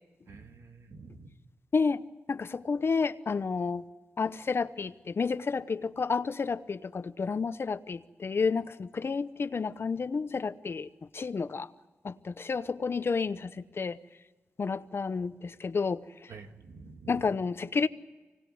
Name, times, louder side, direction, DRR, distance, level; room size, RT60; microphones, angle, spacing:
voice 1, 0.3-1.4 16.3-17.3, right 4 dB, 90° right, 2.0 m, -48 dB
voice 2, 1.7-2.0 2.3-3.8 4.2-10.9 11.1-11.7 12.0-14.0 14.6-16.0 17.1-17.9, left 5 dB, 55° left, 0.9 m, -30 dB
25.0 x 19.0 x 9.5 m
cardioid pair, 60°, 5 cm